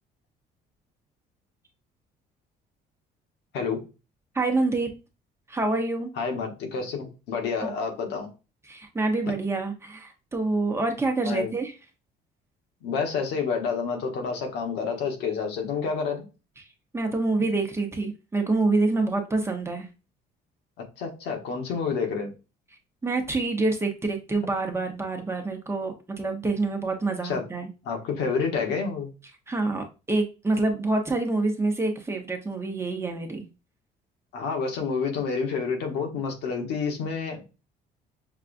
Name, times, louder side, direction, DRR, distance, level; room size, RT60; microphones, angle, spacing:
voice 1, 4.3-4.9 5.5-6.1 7.6-7.7 8.7-11.7 16.9-19.9 23.0-27.7 29.5-33.4, right 3 dB, 15° right, 0.8 m, -26 dB
voice 2, 6.2-8.3 11.2-11.5 12.8-16.3 21.0-22.3 27.2-27.4 27.8-29.1 34.3-37.4, left 5 dB, 85° left, 1.1 m, -29 dB
5.8 x 2.3 x 2.5 m
cardioid pair, 110°, 17 cm